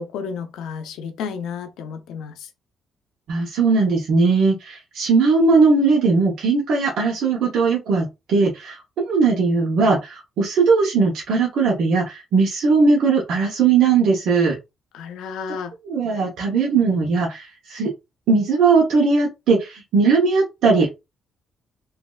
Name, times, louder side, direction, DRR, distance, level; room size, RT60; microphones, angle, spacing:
voice 1, 0.0-2.5 14.9-15.7, left 6 dB, 85° left, 0.6 m, -32 dB
voice 2, 3.3-8.8 9.1-14.6 15.8-17.9 18.3-20.9, right 4 dB, 75° right, 0.9 m, -19 dB
3.0 x 2.6 x 2.3 m
cardioid pair, 90°, 0 cm